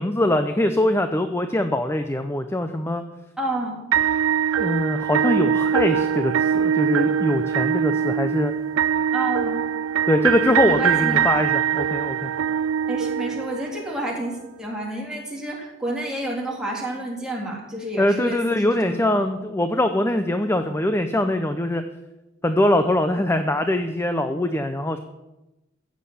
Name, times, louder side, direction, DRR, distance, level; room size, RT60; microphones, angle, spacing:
voice 1, 0.0-3.0 4.6-8.5 10.1-12.3 18.0-21.8 22.4-25.0, left 1 dB, 15° left, 8 dB, 0.7 m, -22 dB
voice 2, 3.4-3.8 9.1-9.6 10.6-11.3 12.9-19.0, right 1 dB, 5° right, -2 dB, 3.5 m, -29 dB
sound 1, 3.9-14.0, right 8 dB, 90° right, 0.4 m, -22 dB
15.0 x 7.6 x 8.5 m, 0.98 s
head